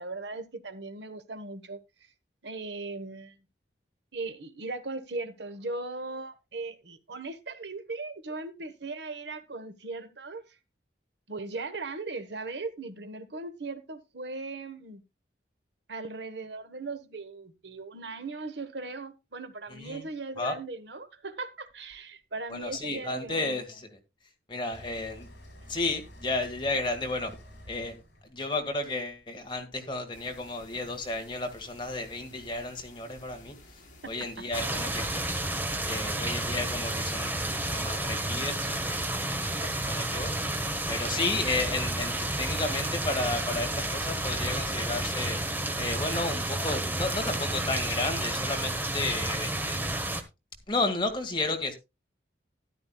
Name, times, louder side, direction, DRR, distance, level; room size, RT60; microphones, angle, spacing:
voice 1, 0.0-2.1 2.4-3.4 4.1-10.6 11.3-15.0 15.9-23.6 25.6-25.7 34.0-34.4 39.9-40.0, right 3 dB, 70° right, 1.2 m, -38 dB
voice 2, 19.7-20.1 20.4-20.5 22.5-24.0 24.5-25.3 25.7-27.3 27.7-28.0 28.2-33.6 34.1-35.2 35.8-39.3 39.6-40.3 40.9-45.4 45.8-49.8 50.7-51.7, left 2 dB, 25° left, 1.8 m, -33 dB
sound 1, 24.7-29.7, equal, 60° left, 4.8 m, -50 dB
sound 2, 30.1-46.7, left 2 dB, 45° left, 4.1 m, -53 dB
sound 3, 34.5-50.2, right 1 dB, 10° right, 1.0 m, -31 dB
13.0 x 11.0 x 2.3 m
head